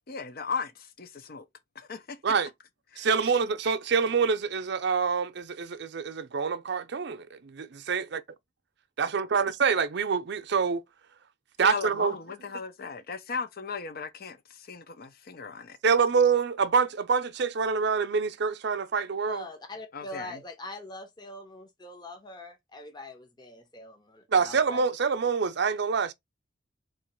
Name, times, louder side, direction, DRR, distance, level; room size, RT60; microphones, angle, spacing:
voice 1, 0.1-1.4 1.7-2.2 2.9-3.3 11.6-15.8 19.9-20.4, left 5 dB, 55° left, 0.6 m, -37 dB
voice 2, 3.0-8.2 9.0-10.8 11.6-12.1 15.8-19.5 24.3-26.1, right 5 dB, 60° right, 0.5 m, -26 dB
voice 3, 19.2-24.8, left 2 dB, 25° left, 0.8 m, -43 dB
3.8 x 2.9 x 4.3 m
head